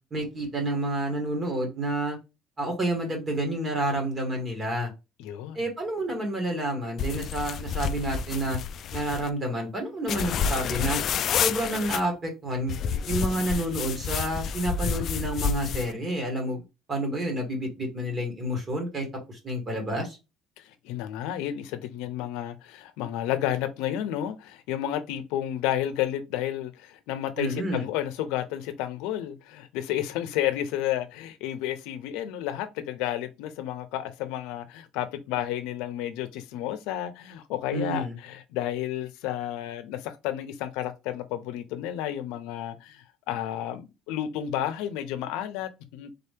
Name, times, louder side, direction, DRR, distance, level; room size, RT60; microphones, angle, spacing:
voice 1, 0.1-2.2 2.6-4.9 5.5-8.6 8.9-11.0 11.4-12.7 13.0-16.6 16.9-20.2 27.4-27.9 37.7-38.1, right 1 dB, 25° right, 1.7 m, -29 dB
voice 2, 5.2-5.6 20.6-46.1, left 12 dB, 85° left, 0.7 m, -31 dB
sound 1, 7.0-9.3 10.1-12.0 12.7-15.9, left 7 dB, 50° left, 0.3 m, -29 dB
4.0 x 2.8 x 3.5 m
cardioid pair, 125°, 0 cm